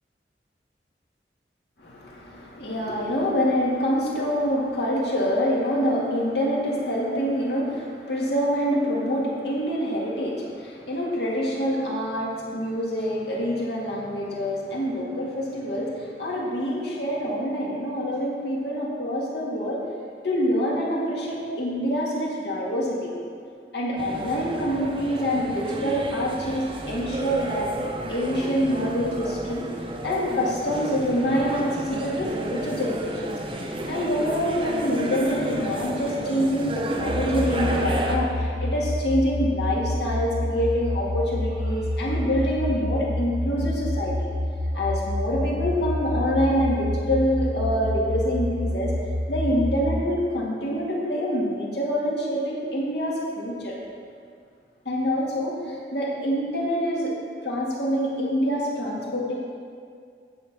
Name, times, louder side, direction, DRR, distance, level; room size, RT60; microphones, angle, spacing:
voice 1, 1.8-19.8 20.2-23.1 23.7-27.7 28.1-29.7 30.0-44.1 44.7-48.9 49.3-53.7 54.9-57.1 57.4-59.3, equal, 75° left, -4 dB, 2.0 m, -26 dB
sound 1, 24.0-38.2, right 1 dB, 30° right, 0.6 m, -32 dB
sound 2, 37.0-50.0, left 1 dB, 65° right, 0.8 m, -28 dB
9.2 x 4.4 x 7.4 m, 2.2 s
head